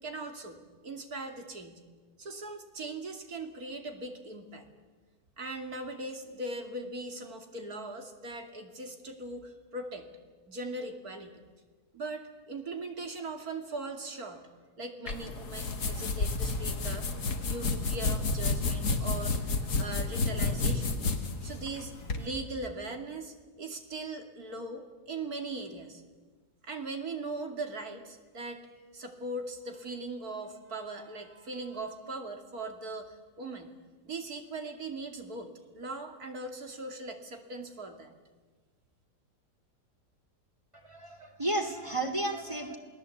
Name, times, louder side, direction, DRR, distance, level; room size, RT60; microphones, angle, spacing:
voice 1, 0.0-1.8 2.2-4.7 5.4-10.1 10.5-11.4 11.9-14.5 14.8-17.1 17.4-21.0 21.4-26.0 26.6-28.6 28.9-33.7 34.0-38.1, right 2 dB, 65° right, 5 dB, 3.0 m, -40 dB
sound 1, 15.1-22.2, left 3 dB, 70° left, 2.4 m, -31 dB
voice 2, 40.7-42.8, right 2 dB, 20° right, 4 dB, 2.8 m, -33 dB
28.0 x 19.5 x 8.4 m, 1.4 s
omnidirectional pair, 1.7 m